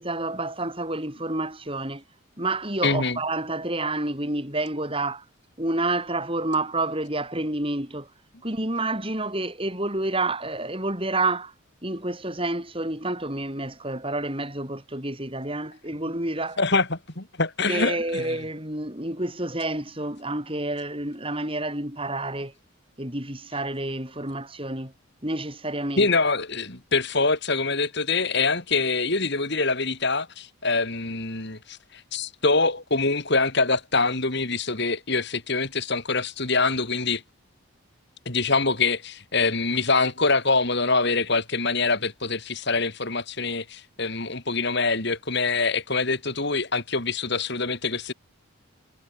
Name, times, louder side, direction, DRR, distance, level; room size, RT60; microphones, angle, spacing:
voice 1, 0.0-2.0 2.4-5.2 5.6-8.1 8.4-11.5 11.8-16.6 17.7-22.5 23.0-24.9 25.2-26.1, right 2 dB, 25° right, 7.2 m, -29 dB
voice 2, 2.8-3.2 16.6-18.4 26.0-37.2 38.2-48.1, left 3 dB, 50° left, 3.5 m, -25 dB
head